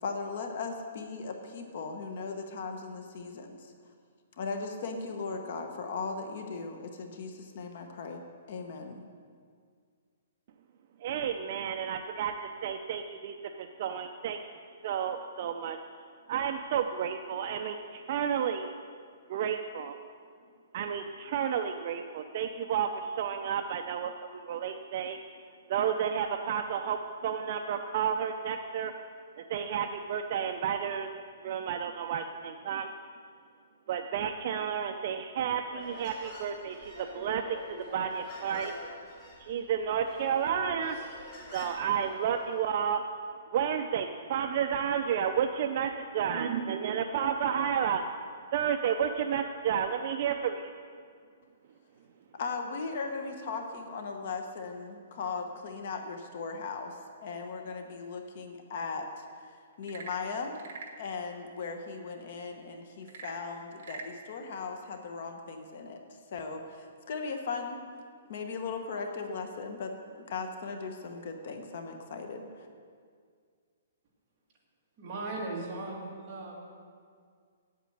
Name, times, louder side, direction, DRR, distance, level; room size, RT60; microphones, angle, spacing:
voice 1, 0.0-3.7 4.4-8.2 8.5-9.0 52.3-59.2 59.8-60.6 61.0-66.0 66.3-67.9 68.3-69.9 70.3-72.7, left 4 dB, 45° left, 5 dB, 1.0 m, -38 dB
voice 2, 11.0-14.4 14.8-15.8 16.3-18.7 19.3-20.0 20.7-25.2 25.7-28.9 29.4-32.9 33.9-38.7 39.4-41.0 41.5-43.0 43.5-48.0 48.5-50.7, right 8 dB, 35° right, 6 dB, 0.4 m, -31 dB
Human voice, 35.7-42.8, left 1 dB, 20° left, 1.5 m, -47 dB
Frog / Percussion / Wood, 59.7-61.0 63.0-64.2, right 4 dB, 55° right, 1.3 m, -44 dB
voice 3, 75.0-76.6, right 2 dB, 20° right, -5 dB, 2.1 m, -37 dB
8.5 x 8.4 x 7.7 m, 2.1 s
hypercardioid pair, 175°, 0 cm